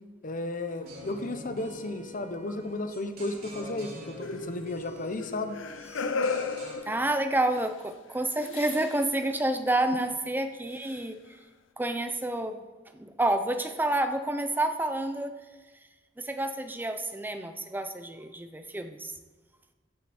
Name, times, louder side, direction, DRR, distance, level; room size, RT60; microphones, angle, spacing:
voice 1, 0.2-5.6, left 2 dB, 45° left, 8 dB, 0.9 m, -34 dB
sound 1, 0.8-6.7, equal, 55° right, 3.8 m, -46 dB
sound 2, 4.2-7.6 8.4-9.0 10.9-11.0, left 4 dB, 85° left, 0.7 m, -35 dB
voice 2, 6.9-11.2 11.8-12.6 12.9-15.3 16.2-19.1, right 1 dB, 10° right, 8 dB, 0.7 m, -29 dB
15.0 x 8.2 x 4.3 m, 1.3 s
head